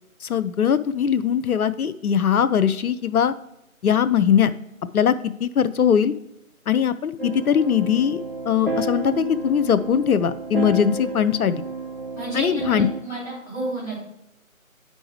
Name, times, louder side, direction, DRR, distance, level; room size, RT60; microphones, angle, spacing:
voice 1, 0.2-3.3 3.8-4.5 4.9-6.1 6.7-11.6 12.3-12.9, left 8 dB, 85° left, 12 dB, 0.5 m, -21 dB
sound 1, 7.2-13.0, right 3 dB, 40° right, 0.4 m, -31 dB
voice 2, 12.1-14.0, right 2 dB, 10° right, -13 dB, 2.8 m, -30 dB
8.5 x 5.3 x 3.1 m, 0.86 s
figure-of-eight pair, 165°, 43 cm